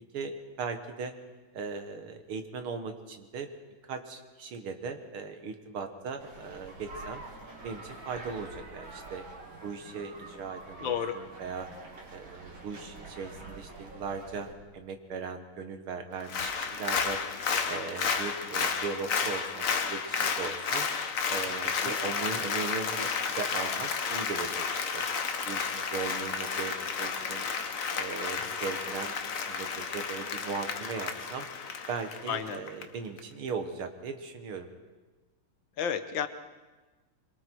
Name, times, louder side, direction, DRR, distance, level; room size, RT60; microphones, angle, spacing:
voice 1, 0.1-1.1 1.5-3.5 3.9-7.2 7.6-9.2 9.6-11.7 12.1-17.2 17.7-20.9 21.3-23.1 23.4-25.1 25.5-27.4 27.9-29.2 29.5-31.5 31.9-34.7, right 5 dB, 90° right, 6 dB, 2.4 m, -38 dB
sound 1, 6.2-14.5, right 2 dB, 65° right, 3.7 m, -46 dB
voice 2, 10.8-11.2 21.6-21.9 32.3-32.6 35.8-36.3, left 8 dB, 65° left, 9 dB, 1.7 m, -32 dB
Applause, 16.2-32.8 33.2-33.3, left 5 dB, 50° left, 1.2 m, -32 dB
25.5 x 23.0 x 4.6 m, 1.3 s
omnidirectional pair, 2.3 m